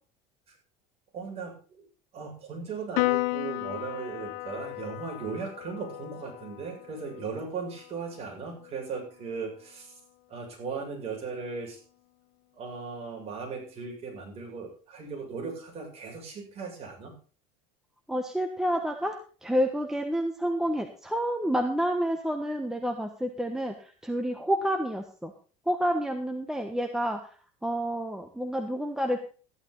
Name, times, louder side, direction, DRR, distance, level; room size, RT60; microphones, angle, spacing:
voice 1, 1.1-1.8 2.1-9.9 10.3-11.8 12.6-17.2, right 5 dB, 40° right, 0 dB, 7.2 m, -37 dB
Piano, 3.0-9.6, left 21 dB, 65° left, 0.7 m, -35 dB
voice 2, 18.1-25.3 25.7-27.4 27.6-29.2, equal, 5° right, 5 dB, 1.2 m, -29 dB
14.0 x 11.5 x 4.0 m, 0.39 s
cardioid pair, 140°, 17 cm